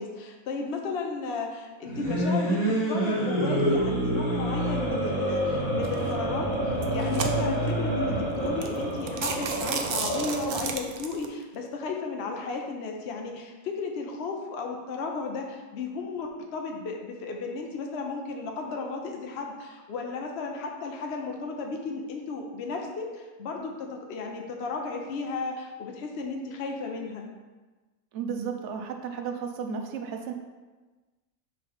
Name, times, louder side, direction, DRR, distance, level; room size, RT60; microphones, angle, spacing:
voice 1, 0.0-27.2, left 4 dB, 55° left, 2 dB, 0.8 m, -34 dB
sound 1, 1.8-10.6, right 1 dB, 25° left, 1.6 m, -27 dB
sound 2, 5.8-6.1 6.7-7.7 8.2-8.3 8.6-8.8 9.1-11.3, right 5 dB, 80° right, 0.5 m, -32 dB
voice 2, 28.1-30.3, right 6 dB, 60° right, 4 dB, 0.8 m, -33 dB
5.6 x 3.4 x 5.1 m, 1.3 s
omnidirectional pair, 1.6 m